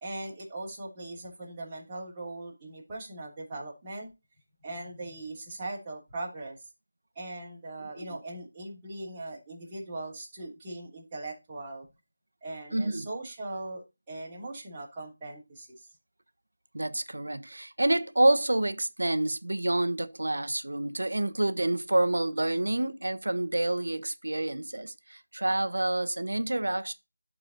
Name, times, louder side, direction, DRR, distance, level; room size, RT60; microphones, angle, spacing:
voice 1, 0.0-4.1 4.6-6.7 7.1-11.9 12.4-15.9, right 2 dB, 10° right, 3.3 m, -40 dB
voice 2, 12.7-13.1 16.7-26.9, right 1 dB, 70° right, 1.2 m, -28 dB
11.5 x 4.7 x 4.1 m
figure-of-eight pair, 170°, 0 cm